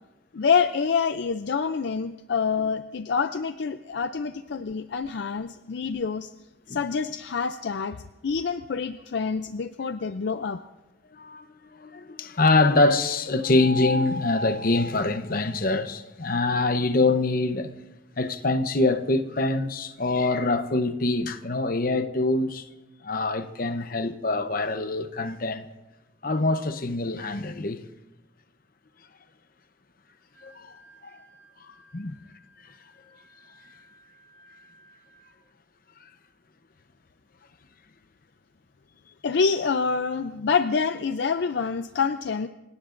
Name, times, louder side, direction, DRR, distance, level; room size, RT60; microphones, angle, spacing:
voice 1, 0.3-6.3 6.7-10.7 39.2-42.5, left 5 dB, 60° left, 0.4 m, -26 dB
voice 2, 11.1-11.5 11.7-17.7 18.2-22.7 23.0-25.7 26.2-27.8 30.4-30.7 31.7-32.1 32.6-32.7, left 2 dB, 45° left, 0.8 m, -24 dB
Wind instrument woodwind instrument, 30.1-35.5, right 1 dB, 85° right, 7.8 m, -57 dB
29.0 x 17.5 x 2.6 m
head